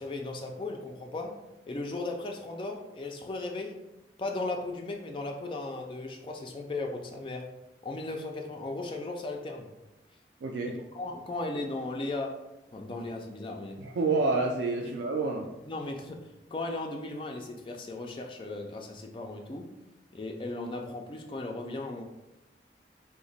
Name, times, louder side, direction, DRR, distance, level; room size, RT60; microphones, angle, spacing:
voice 1, 0.0-1.4 1.7-3.8 4.2-7.5 7.8-9.7 10.6-12.5 12.7-13.8 14.8-14.9 15.7-19.7 20.1-22.0, left 2 dB, 30° left, 2 dB, 0.3 m, -36 dB
voice 2, 10.4-10.8 13.8-15.5, right 3 dB, 80° right, 1 dB, 0.3 m, -28 dB
2.8 x 2.1 x 4.0 m, 0.96 s
head